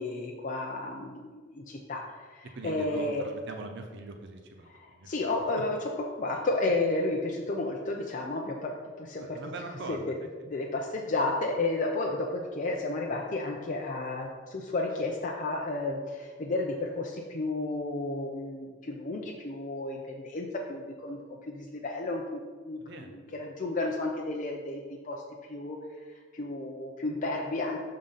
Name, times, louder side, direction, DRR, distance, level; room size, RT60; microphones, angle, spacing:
voice 1, 0.0-3.2 4.7-8.7 9.0-9.4 9.9-10.0 10.5-21.2 21.5-25.2 25.5-25.8 26.3-27.8, left 2 dB, 40° left, -1 dB, 0.6 m, -32 dB
voice 2, 2.4-5.2 9.2-10.3 22.8-23.4, right 3 dB, 60° right, 4 dB, 0.6 m, -42 dB
6.7 x 3.8 x 5.5 m, 1.5 s
head